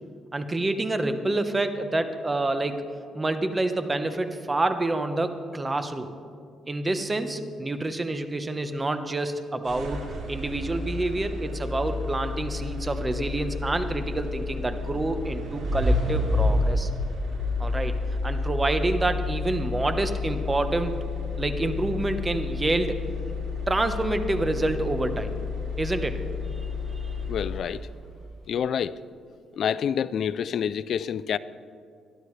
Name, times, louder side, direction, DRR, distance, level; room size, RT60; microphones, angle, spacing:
voice 1, 0.3-2.8 3.1-6.1 6.7-16.9 17.6-17.9 18.2-20.9 21.4-23.0 23.7-25.3 25.8-26.2 27.0-27.1, right 2 dB, 20° right, 8 dB, 1.1 m, -27 dB
sound 1, 9.6-27.9, left 3 dB, 75° right, 3.9 m, -30 dB
voice 2, 27.2-27.9 28.5-29.0 29.5-31.4, left 8 dB, 65° left, 16 dB, 0.3 m, -27 dB
21.5 x 12.5 x 3.3 m, 2.3 s
cardioid pair, 90°, 0 cm